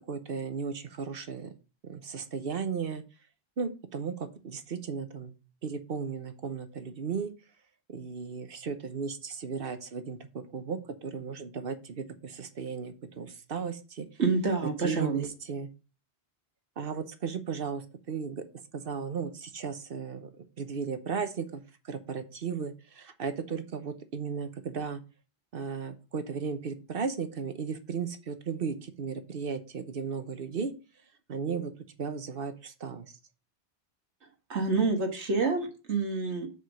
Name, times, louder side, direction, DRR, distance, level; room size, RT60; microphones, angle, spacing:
voice 1, 0.1-1.5 1.8-3.0 3.6-5.3 5.6-7.3 7.9-14.1 14.6-15.7 16.8-18.4 18.7-25.0 25.5-30.7 31.3-31.7 32.0-33.1, right 5 dB, 60° right, 9 dB, 1.1 m, -35 dB
voice 2, 14.2-15.3 34.5-36.5, right 4 dB, 85° right, 3 dB, 1.9 m, -27 dB
6.6 x 5.0 x 6.2 m, 0.32 s
omnidirectional pair, 1.1 m